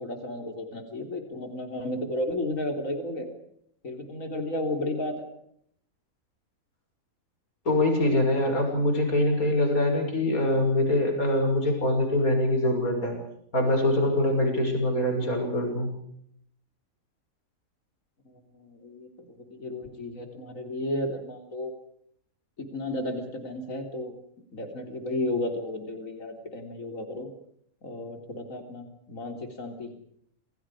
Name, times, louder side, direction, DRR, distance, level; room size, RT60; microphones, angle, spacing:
voice 1, 0.0-3.3 3.8-5.3 18.3-21.7 22.6-24.1 24.5-27.3 27.8-29.9, left 1 dB, 70° left, 4 dB, 4.0 m, -33 dB
voice 2, 7.6-13.1 13.5-15.9, left 1 dB, 85° left, 3 dB, 6.7 m, -24 dB
28.5 x 27.5 x 5.0 m, 0.69 s
omnidirectional pair, 1.5 m